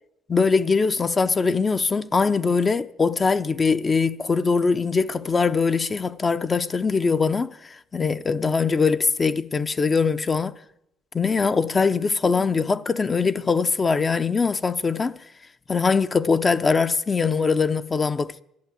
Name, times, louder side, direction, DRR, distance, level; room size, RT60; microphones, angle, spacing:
voice 1, 0.3-10.5 11.1-15.2 15.7-18.4, left 4 dB, 25° left, 0.6 m, -22 dB
11.5 x 11.5 x 9.2 m
cardioid pair, 115°, 0 cm